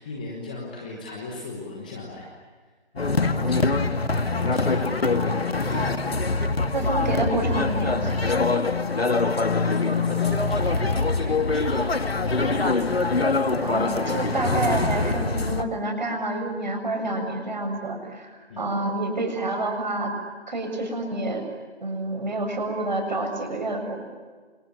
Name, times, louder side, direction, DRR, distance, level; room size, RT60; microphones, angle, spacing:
voice 1, 0.0-2.3 2.6-3.2 3.5-3.8 4.3-6.1 9.2-11.8 12.2-12.8 18.5-18.6, left 2 dB, 10° left, -1 dB, 1.3 m, -38 dB
sound 1, 3.0-15.6, left 3 dB, 60° left, 2.2 m, -23 dB
voice 2, 3.3-3.7 6.7-8.2 13.6-20.1 20.5-21.5 21.8-24.0, right 2 dB, 40° right, 5 dB, 7.2 m, -28 dB
29.0 x 28.5 x 7.0 m, 1.5 s
figure-of-eight pair, 165°, 34 cm